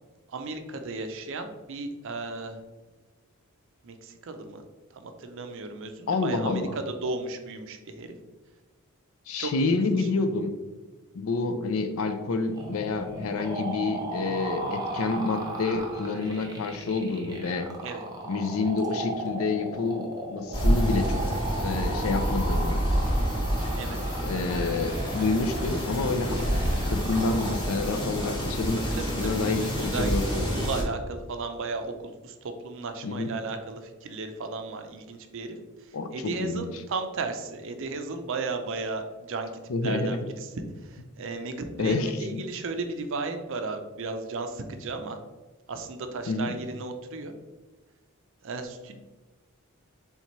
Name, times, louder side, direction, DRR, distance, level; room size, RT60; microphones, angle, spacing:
voice 1, 0.3-2.6 3.8-4.6 4.9-6.7 7.0-8.2 9.4-10.1 17.8-18.0 23.7-24.0 28.8-29.1 29.6-31.9 32.2-35.6 36.1-40.5 40.8-45.2 45.7-47.3 48.4-49.0, right 3 dB, 60° right, 7 dB, 0.5 m, -35 dB
voice 2, 6.1-6.8 9.3-10.5 11.1-17.7 18.3-21.2 21.6-22.8 24.2-26.5 26.9-30.5 33.0-33.3 35.9-36.7 39.7-40.2 41.8-42.4 46.3-46.5, left 3 dB, 65° left, 8 dB, 0.4 m, -28 dB
sound 1, 12.5-28.5, right 1 dB, 15° right, 0.7 m, -36 dB
sound 2, 20.5-30.8, equal, 20° left, 0.9 m, -28 dB
4.2 x 3.5 x 3.0 m, 1.2 s
head